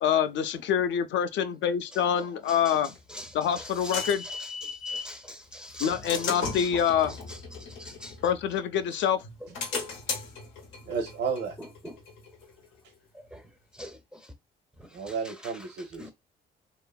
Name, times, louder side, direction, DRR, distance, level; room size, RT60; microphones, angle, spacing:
voice 1, 0.0-2.9 3.3-4.2 5.8-7.2 8.2-9.2, left 8 dB, 70° left, 0.4 m, -26 dB
sound 1, 3.0-5.2 5.7-8.8 9.2-12.7, left 4 dB, 90° left, 0.8 m, -37 dB
voice 2, 4.6-6.3 6.6-6.7 7.8-8.1 9.7-9.9 11.8-11.9 13.3-13.4 13.8-14.0 16.0-16.1, left 1 dB, 5° right, 0.4 m, -42 dB
voice 3, 10.8-11.6 14.9-16.1, right 5 dB, 80° right, 0.6 m, -32 dB
2.8 x 2.4 x 2.2 m
cardioid pair, 90°, 20 cm